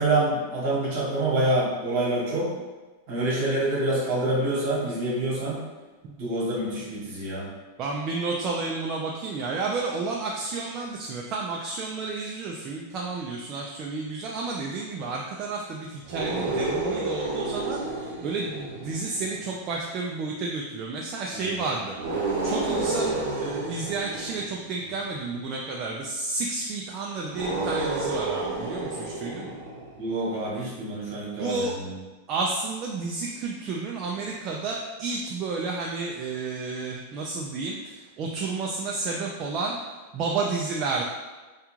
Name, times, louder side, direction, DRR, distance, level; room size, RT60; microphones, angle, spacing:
voice 1, 0.0-2.5 3.1-5.6 6.2-7.5 21.3-21.5 30.0-31.9, right 2 dB, 55° right, -5 dB, 1.1 m, -26 dB
voice 2, 7.8-29.6 31.4-31.7 32.3-41.0, right 3 dB, 40° right, -1 dB, 0.3 m, -31 dB
sound 1, 16.0-19.6 21.9-25.1 27.3-30.0, right 2 dB, 85° right, 0.6 m, -30 dB
2.3 x 2.3 x 3.0 m, 1.2 s
hypercardioid pair, 125°, 0 cm